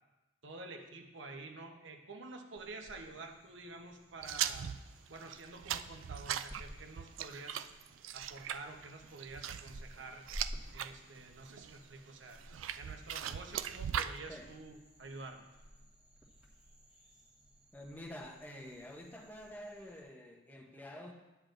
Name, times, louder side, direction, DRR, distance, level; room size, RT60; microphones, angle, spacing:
voice 1, 0.4-4.7 5.1-7.7 8.1-10.3 10.7-12.4 12.8-15.5, right 3 dB, 70° right, 4 dB, 1.0 m, -49 dB
sound 1, 2.6-20.0, equal, 5° right, 1.5 m, -54 dB
sound 2, 4.2-10.9 11.3-11.8 12.4-14.2, right 10 dB, 85° right, 0.3 m, -39 dB
voice 2, 17.7-21.1, left 1 dB, 10° left, 0 dB, 0.9 m, -48 dB
10.5 x 9.5 x 2.6 m, 1.1 s
head